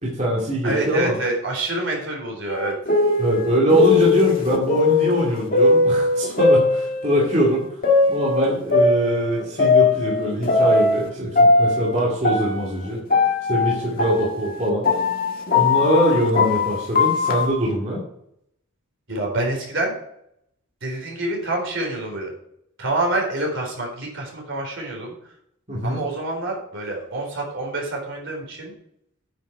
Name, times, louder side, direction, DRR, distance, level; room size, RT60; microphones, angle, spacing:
voice 1, 0.0-1.1 3.2-7.7 8.1-13.0 13.5-14.9 15.5-18.0 25.7-26.0, equal, 30° right, -5 dB, 2.5 m, -22 dB
voice 2, 0.6-2.8 19.1-19.9 20.8-22.3 22.8-25.1 25.8-28.7, right 2 dB, 55° right, 0 dB, 4.0 m, -27 dB
sound 1, 2.5-7.3 7.8-11.1 11.4-17.5, left 3 dB, 40° left, 1.8 m, -19 dB
9.3 x 8.2 x 4.7 m, 0.72 s
head